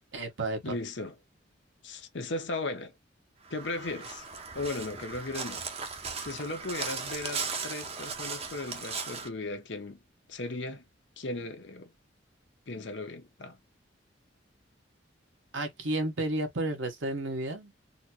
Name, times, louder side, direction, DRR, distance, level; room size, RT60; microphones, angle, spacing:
voice 1, 0.1-0.8 15.5-17.7, right 2 dB, 85° right, 1.2 m, -32 dB
voice 2, 0.6-1.1 1.8-2.9 3.5-4.2 4.5-5.7 6.2-10.0 10.3-10.8 11.2-11.9 12.7-13.6, left 2 dB, 70° left, 0.9 m, -36 dB
Crow, 3.4-9.3, right 5 dB, 35° right, 0.7 m, -37 dB
4.1 x 2.0 x 2.8 m
head